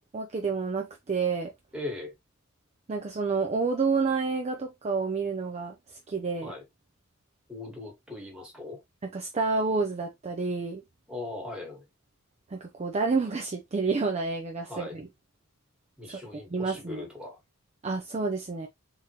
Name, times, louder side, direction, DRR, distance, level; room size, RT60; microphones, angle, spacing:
voice 1, 0.1-1.5 2.9-6.5 9.0-10.8 12.5-15.1 16.5-17.1 17.8-18.7, right 4 dB, 30° right, 0.4 m, -29 dB
voice 2, 1.7-2.1 6.4-6.6 7.5-8.8 11.1-11.8 14.6-14.9 16.0-17.4, left 2 dB, 5° right, 1.3 m, -39 dB
3.6 x 2.9 x 2.8 m
head